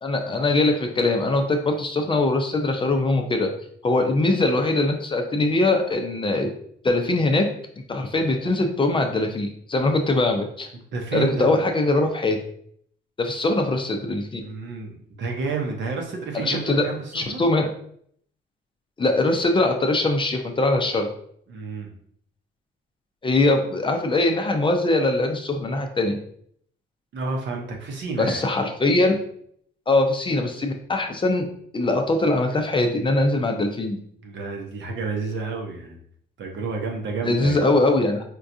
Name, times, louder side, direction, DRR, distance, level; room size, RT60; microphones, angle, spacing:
voice 1, 0.0-3.5 3.8-6.5 6.8-7.5 7.9-10.7 11.1-12.4 13.2-14.4 16.3-16.8 17.1-17.7 19.0-21.1 23.2-26.2 28.2-29.1 29.9-31.4 31.7-34.0 37.2-38.2, left 2 dB, 25° left, 4 dB, 0.5 m, -22 dB
voice 2, 10.9-11.5 14.4-17.4 21.5-21.9 27.1-28.4 34.2-36.0 36.4-37.7, right 4 dB, 65° right, 1 dB, 0.8 m, -30 dB
4.5 x 2.3 x 2.6 m, 0.65 s
cardioid pair, 90°, 20 cm